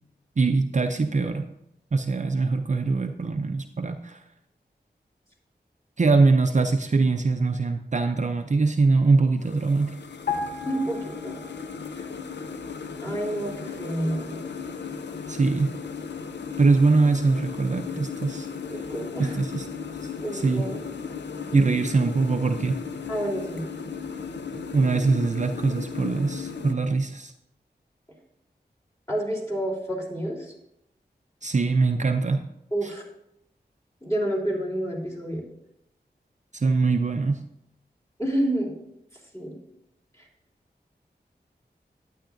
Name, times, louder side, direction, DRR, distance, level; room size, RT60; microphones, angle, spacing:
voice 1, 0.4-1.5 1.9-4.2 6.0-10.0 15.3-15.8 16.6-18.5 19.2-19.7 20.3-20.7 21.5-22.8 24.5-27.3 31.4-32.5 32.8-32.9 36.5-37.4, right 3 dB, 45° right, 6 dB, 0.5 m, -23 dB
sound 1, 9.4-26.7, left 6 dB, 80° left, 0.6 m, -36 dB
sound 2, 10.3-11.9 12.2-12.4, left 5 dB, 60° left, 1.3 m, -33 dB
voice 2, 10.6-11.4 12.0-12.1 13.0-14.5 18.7-19.5 20.2-20.8 23.1-23.7 29.1-30.5 32.7-33.0 34.0-35.4 38.2-38.7 39.3-39.6, right 1 dB, 15° left, -4 dB, 3.4 m, -29 dB
11.5 x 9.1 x 2.6 m, 0.82 s
cardioid pair, 45°, 18 cm